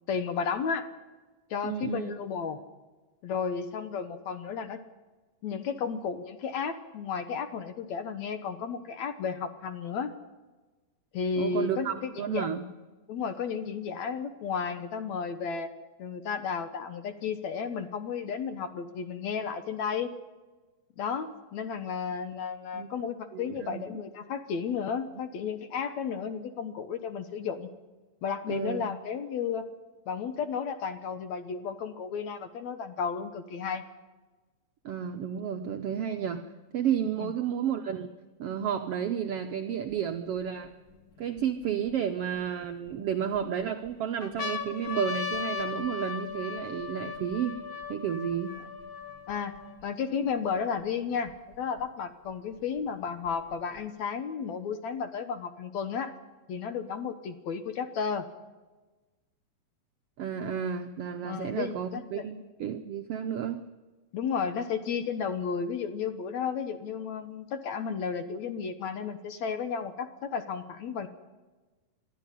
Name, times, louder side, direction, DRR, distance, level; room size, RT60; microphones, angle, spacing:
voice 1, 0.1-0.9 1.5-2.6 3.2-4.8 5.4-10.1 11.1-12.5 13.1-15.7 16.0-20.1 21.0-27.7 28.2-29.7 30.1-33.8 37.2-37.3 49.3-56.1 56.5-58.3 61.2-62.3 64.1-71.1, left 6 dB, 65° left, 10 dB, 2.1 m, -33 dB
voice 2, 1.6-2.1 11.4-12.7 22.7-22.9 23.3-24.0 28.5-28.8 34.8-36.4 36.7-38.1 38.4-40.7 41.2-47.6 47.9-48.6 60.2-63.6, right 8 dB, 75° right, 5 dB, 1.4 m, -32 dB
sound 1, 39.9-40.0 40.6-41.9 42.6-43.4 43.9-44.0 44.2-49.8 50.5-50.6 50.8-51.8 52.8-53.8, left 6 dB, 40° left, 1.4 m, -37 dB
22.0 x 13.0 x 10.0 m, 1.2 s
omnidirectional pair, 3.8 m